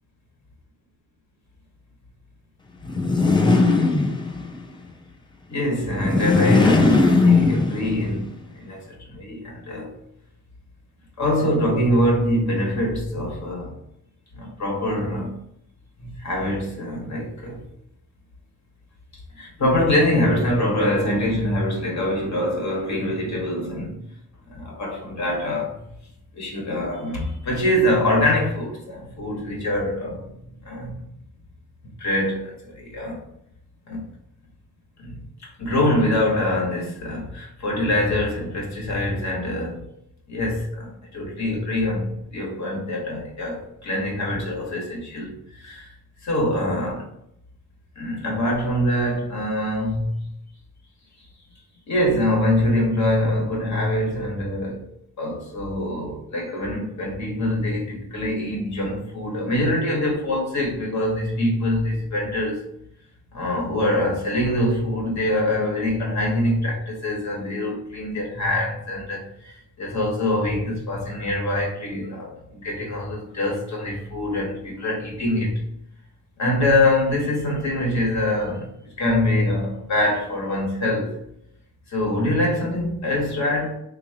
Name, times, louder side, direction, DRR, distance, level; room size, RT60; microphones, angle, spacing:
sound 1, 2.8-4.6 5.9-8.1, left 3 dB, 15° left, 0.4 m, -18 dB
voice 1, 5.5-8.3 8.5-9.9 11.2-13.8 14.3-15.3 16.0-17.6 19.4-24.0 24.5-25.8 26.3-30.3 30.6-31.0 32.0-33.3 33.9-34.0 35.0-35.2 35.4-39.8 40.3-45.9 46.2-47.1 48.0-50.3 51.9-54.9 55.2-62.6 63.3-75.6 76.4-81.1 81.9-83.7, left 1 dB, 50° left, 1.2 m, -24 dB
3.6 x 2.8 x 2.8 m
wide cardioid pair, 140°, 35 cm